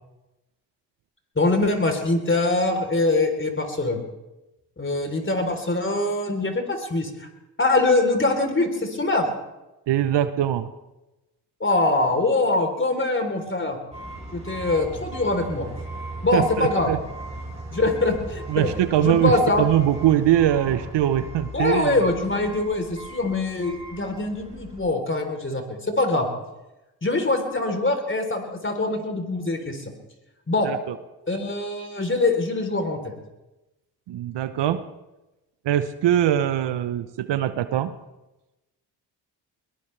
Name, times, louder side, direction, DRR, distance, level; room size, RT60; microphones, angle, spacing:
voice 1, 1.4-4.0 4.8-7.3 7.6-9.3 11.6-13.8 14.3-15.7 16.2-16.9 17.7-18.7 19.0-19.6 21.5-26.3 27.0-29.8 30.5-30.7 31.3-33.1, left 2 dB, 25° left, 5 dB, 3.6 m, -23 dB
voice 2, 9.9-10.7 16.3-17.0 18.5-22.0 30.6-31.0 34.1-34.8 35.6-37.9, right 11 dB, 60° right, 13 dB, 1.0 m, -22 dB
sound 1, 13.9-24.8, right 2 dB, 15° right, 7.0 m, -38 dB
21.5 x 19.0 x 3.4 m, 1.0 s
hypercardioid pair, 50°, 47 cm